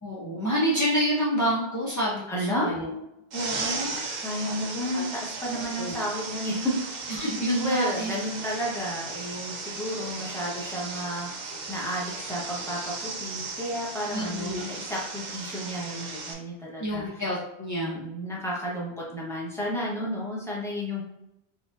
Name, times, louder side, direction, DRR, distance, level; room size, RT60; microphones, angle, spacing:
voice 1, 0.0-3.0 3.3-4.5 4.9-5.1 5.5-6.0 7.1-8.1 14.1-14.6 16.8-18.0, equal, 25° left, -7 dB, 0.4 m, -28 dB
voice 2, 2.3-2.7 4.2-6.7 7.1-7.2 7.6-17.1 17.8-21.0, equal, 5° left, -5 dB, 0.8 m, -32 dB
sound 1, 3.3-16.3, right 4 dB, 55° right, 0.6 m, -36 dB
4.3 x 2.5 x 2.5 m, 0.86 s
omnidirectional pair, 1.1 m